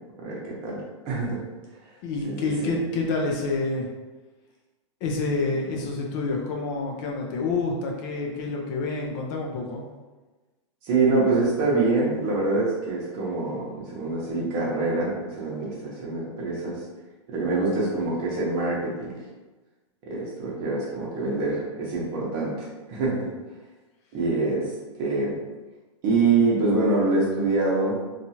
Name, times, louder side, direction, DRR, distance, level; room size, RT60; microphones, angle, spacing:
voice 1, 0.2-1.4 2.2-2.8 10.8-16.8 17.3-19.1 20.1-23.3 24.1-24.7 25.0-25.4 26.0-28.1, right 3 dB, 35° right, -4 dB, 0.9 m, -25 dB
voice 2, 2.0-3.9 5.0-9.8, left 3 dB, 35° left, 0 dB, 0.4 m, -28 dB
2.8 x 2.4 x 2.8 m, 1.2 s
supercardioid pair, 150°, 16 cm